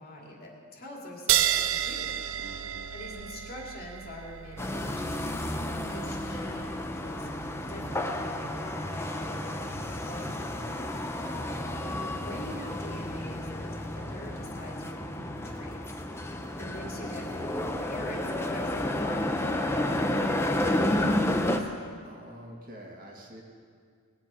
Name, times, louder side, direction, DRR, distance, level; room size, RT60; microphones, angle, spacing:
voice 1, 0.0-2.1 2.9-5.4 5.9-11.0 11.8-16.0 16.6-21.7, left 1 dB, 45° left, -2 dB, 2.5 m, -44 dB
sound 1, 1.3-8.3, right 11 dB, 65° right, 0.5 m, -32 dB
voice 2, 2.4-2.9 11.2-11.6 22.0-23.4, right 1 dB, 40° right, -1 dB, 2.2 m, -47 dB
sound 2, 4.6-21.6, left 1 dB, 10° left, 0.7 m, -31 dB
20.0 x 8.9 x 5.6 m, 2.1 s
head